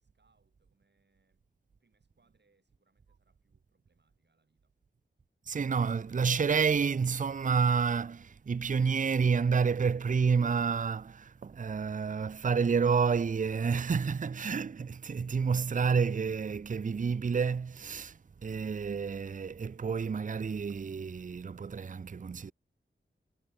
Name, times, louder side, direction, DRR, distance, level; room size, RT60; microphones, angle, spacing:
voice 1, 0.0-1.4 1.8-4.7, right 4 dB, 60° right, 7.8 m, -74 dB
voice 2, 5.5-22.5, right 5 dB, 40° right, 0.5 m, -29 dB
wide cardioid pair, 80°, 20 cm